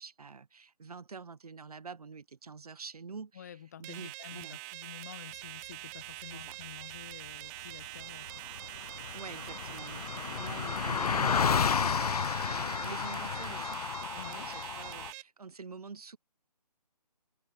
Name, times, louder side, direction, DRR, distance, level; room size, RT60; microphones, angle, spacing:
voice 1, 0.0-4.6 6.3-6.6 9.1-13.8 14.1-16.2, right 5 dB, 65° right, 1.3 m, -47 dB
voice 2, 3.4-8.4 14.2-14.5, left 9 dB, 25° left, 0.8 m, -49 dB
sound 1, 3.8-15.2, right 25 dB, 10° right, 0.9 m, -44 dB
Car passing by, 8.0-8.1 8.3-15.1, left 6 dB, 65° left, 0.6 m, -32 dB
figure-of-eight pair, 160°, 21 cm